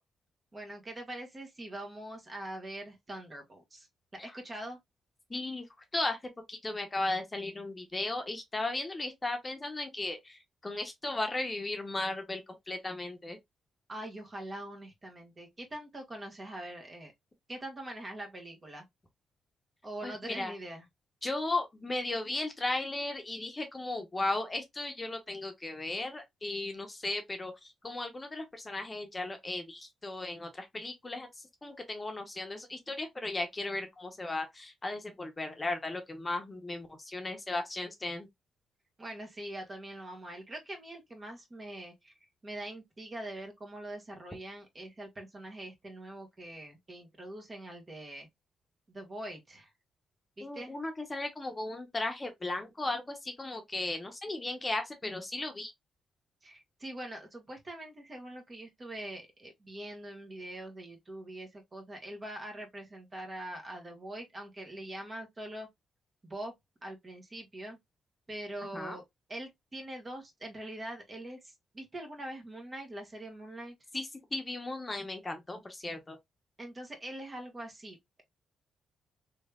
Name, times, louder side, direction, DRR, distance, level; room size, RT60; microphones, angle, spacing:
voice 1, 0.5-3.9 4.1-4.8 13.9-17.1 17.5-18.8 19.8-20.8 39.0-42.1 42.4-48.3 48.9-49.7 50.4-50.7 56.4-65.7 66.2-66.5 66.8-67.8 68.3-69.0 69.3-73.7 76.6-78.2, right 1 dB, 35° right, 1.4 m, -43 dB
voice 2, 5.3-5.6 5.9-6.2 6.5-12.4 12.7-13.4 20.0-20.5 21.2-31.3 31.6-38.3 50.4-55.7 68.7-69.0 73.9-76.2, left 2 dB, 25° left, 0.9 m, -36 dB
3.3 x 3.1 x 2.3 m
cardioid pair, 65°, 0 cm